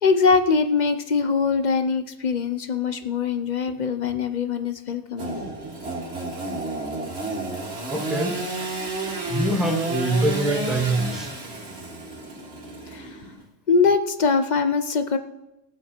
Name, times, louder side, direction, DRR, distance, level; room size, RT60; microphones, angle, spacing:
voice 1, 0.0-5.4 12.9-13.1 13.7-15.2, left 5 dB, 45° left, 9 dB, 0.7 m, -22 dB
Engine / Sawing, 5.2-13.4, right 2 dB, 55° right, 2.2 m, -31 dB
voice 2, 7.9-8.4 9.3-11.3, right 1 dB, ahead, 0 dB, 1.8 m, -24 dB
17.5 x 7.5 x 4.4 m, 0.97 s
omnidirectional pair, 1.3 m